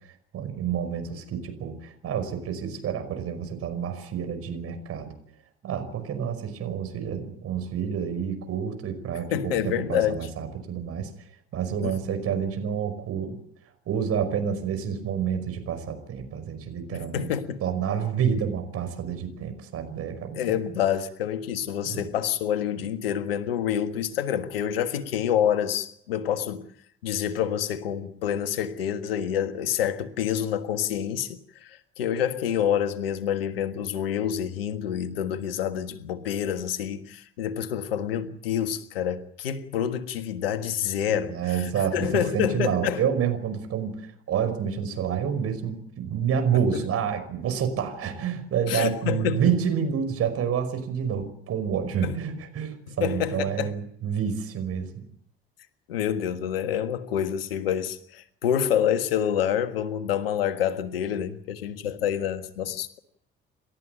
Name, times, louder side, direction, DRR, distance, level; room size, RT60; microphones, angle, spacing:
voice 1, 0.3-5.1 5.6-11.1 11.5-13.4 13.9-17.3 17.6-20.4 20.7-20.8 21.8-22.0 41.1-44.0 44.3-55.0, right 7 dB, 55° right, 5.5 m, -28 dB
voice 2, 9.3-10.3 11.8-12.0 16.9-17.6 20.3-26.7 27.0-43.1 46.5-46.8 48.7-49.4 52.0-52.1 52.9-53.7 55.9-63.0, left 9 dB, 80° left, 1.6 m, -27 dB
29.0 x 13.5 x 9.2 m
hypercardioid pair, 55°, 29 cm